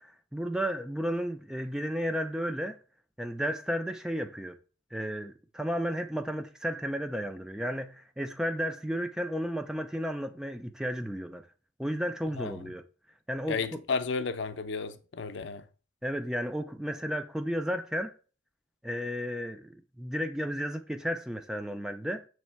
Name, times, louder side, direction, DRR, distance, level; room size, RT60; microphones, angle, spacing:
voice 1, 0.0-2.8 3.2-4.6 4.9-11.4 11.8-12.8 13.3-13.8 16.0-18.1 18.8-22.3, equal, 5° right, 0.3 m, -33 dB
voice 2, 13.5-15.6, left 4 dB, 65° left, 0.5 m, -33 dB
7.0 x 3.2 x 4.5 m
head